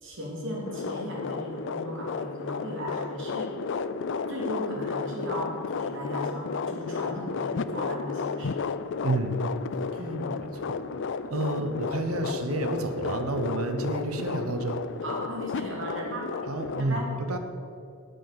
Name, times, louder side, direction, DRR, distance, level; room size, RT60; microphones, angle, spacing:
voice 1, 0.0-3.6 4.3-8.6 10.0-10.5 11.4-11.8 15.0-16.4 16.8-17.2, equal, 60° right, -2 dB, 2.9 m, -36 dB
sound 1, 0.7-16.8, left 5 dB, 60° left, 0.4 m, -33 dB
voice 2, 9.0-9.4 10.7-10.8 11.3-14.8 16.5-17.4, right 2 dB, 85° right, 7 dB, 1.0 m, -29 dB
9.3 x 8.4 x 6.8 m, 2.6 s
head